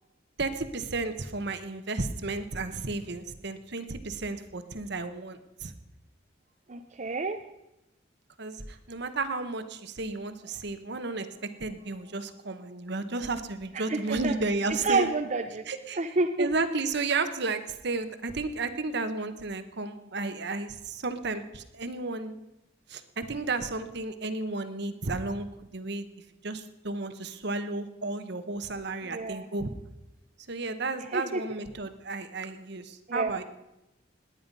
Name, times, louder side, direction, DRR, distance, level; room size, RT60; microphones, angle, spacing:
voice 1, 0.4-5.7 8.4-11.3 11.6-15.1 15.7-16.0 16.4-22.4 22.9-26.1 26.4-29.7 30.5-33.4, right 3 dB, 60° right, 10 dB, 1.1 m, -33 dB
voice 2, 6.7-7.4 13.7-14.3 14.8-15.7 15.9-16.5 29.0-29.5 31.0-31.4 33.1-33.4, right 3 dB, 40° right, 6 dB, 0.6 m, -29 dB
18.5 x 10.0 x 5.4 m, 0.95 s
head